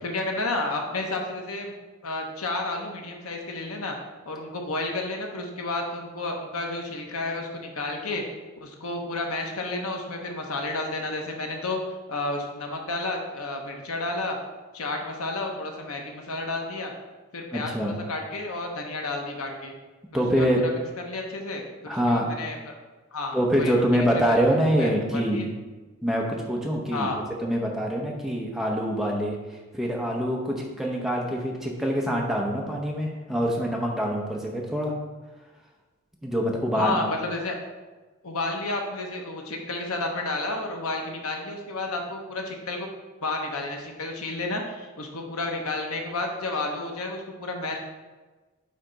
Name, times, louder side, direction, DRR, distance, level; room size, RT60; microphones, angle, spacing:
voice 1, 0.0-1.7 2.0-4.0 4.2-8.2 8.6-11.8 12.1-14.4 14.7-16.9 17.3-19.7 20.1-20.7 21.1-22.7 23.1-25.4 26.9-27.2 36.7-37.6 38.2-42.9 43.2-47.8, left 2 dB, 80° left, 2 dB, 1.0 m, -31 dB
voice 2, 17.5-17.9 20.1-20.6 21.9-22.3 23.3-25.5 26.0-27.1 27.4-34.9 36.2-37.1, equal, ahead, -1 dB, 0.7 m, -25 dB
9.2 x 3.3 x 3.9 m, 1.3 s
head